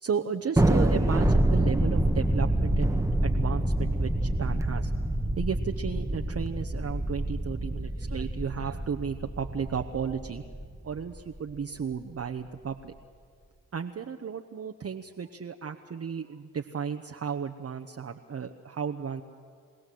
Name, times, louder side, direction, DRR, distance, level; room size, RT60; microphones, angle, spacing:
voice 1, 0.0-4.9 5.4-10.4 10.8-12.9 13.7-19.2, right 6 dB, 40° right, 5 dB, 1.0 m, -34 dB
Thunder, 0.6-11.2, right 1 dB, 10° right, 1.1 m, -27 dB
24.0 x 16.5 x 7.8 m, 2.1 s
hypercardioid pair, 45°, 39 cm